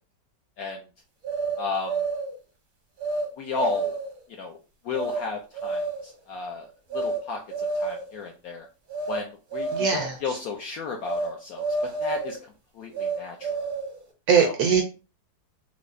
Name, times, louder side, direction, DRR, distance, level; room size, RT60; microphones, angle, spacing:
sound 1, 1.2-2.3 3.0-3.3 3.6-4.2 4.9-5.2 5.5-6.1 6.9-7.2 7.5-8.1 8.9-9.2 9.5-10.1 11.1-11.3 11.6-12.4 12.9-14.0, right 3 dB, 50° right, 0.6 m, -29 dB
voice 1, 1.6-2.0 3.4-3.9 4.3-4.6 4.8-8.7 9.1-11.6 12.0-12.4 12.7-13.5 14.4-14.6, left 4 dB, 75° left, 2 dB, 0.8 m, -33 dB
voice 2, 9.7-10.4 14.3-14.8, right 6 dB, 75° right, 3 dB, 0.9 m, -22 dB
4.7 x 2.0 x 2.5 m, 0.32 s
omnidirectional pair, 2.0 m